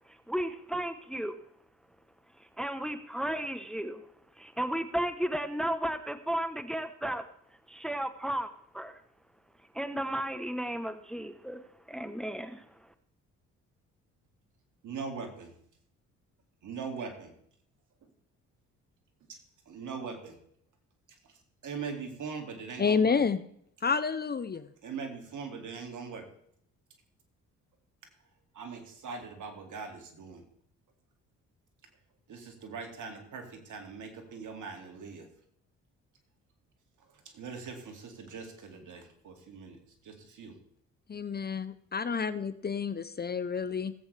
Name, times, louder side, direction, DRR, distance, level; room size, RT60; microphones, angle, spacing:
voice 1, 0.3-1.4 2.6-4.0 4.4-7.2 7.7-8.5 8.7-9.0 9.7-11.6 11.9-12.6, right 1 dB, ahead, 10 dB, 0.9 m, -33 dB
voice 2, 14.8-15.5 16.6-17.3 18.0-18.1 19.3-19.4 19.7-20.4 21.2-23.2 24.8-26.3 28.5-30.4 32.3-35.3 37.0-40.6, right 5 dB, 65° right, 4 dB, 2.3 m, -41 dB
voice 3, 22.8-23.4 23.8-24.7 41.1-43.9, left 5 dB, 30° left, 13 dB, 0.7 m, -29 dB
18.0 x 8.1 x 3.3 m, 0.68 s
supercardioid pair, 60°, 33 cm